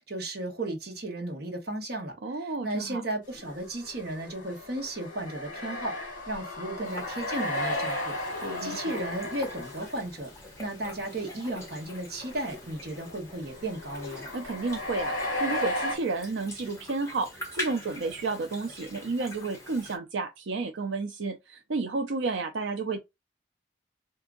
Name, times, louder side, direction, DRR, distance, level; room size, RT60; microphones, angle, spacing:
voice 1, 0.0-5.9 6.3-8.2 8.6-10.3 10.6-14.3, right 1 dB, 55° right, 1.2 m, -34 dB
voice 2, 2.2-3.0 8.3-9.0 14.3-23.0, right 3 dB, 80° right, 0.5 m, -32 dB
sound 1, 3.3-10.1 10.6-10.9 11.2-11.3 11.9-16.0, left 1 dB, 45° left, 1.4 m, -35 dB
sound 2, 6.8-20.0, left 1 dB, 15° left, 1.2 m, -44 dB
3.5 x 2.7 x 3.7 m
head